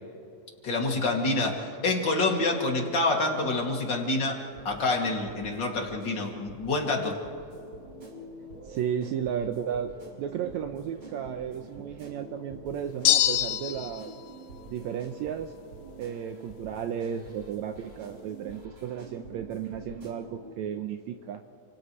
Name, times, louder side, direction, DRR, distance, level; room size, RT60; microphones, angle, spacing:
voice 1, 0.6-4.4 4.6-7.2, left 2 dB, 40° left, 0 dB, 3.0 m, -27 dB
sound 1, 4.5-20.5, right 2 dB, 40° right, 4.5 m, -47 dB
voice 2, 8.6-14.1 14.7-15.5 16.0-21.4, right 8 dB, 75° right, 6 dB, 2.0 m, -34 dB
sound 2, 13.0-14.0, left 13 dB, 85° left, 2.2 m, -24 dB
30.0 x 27.5 x 3.2 m, 2.4 s
omnidirectional pair, 3.5 m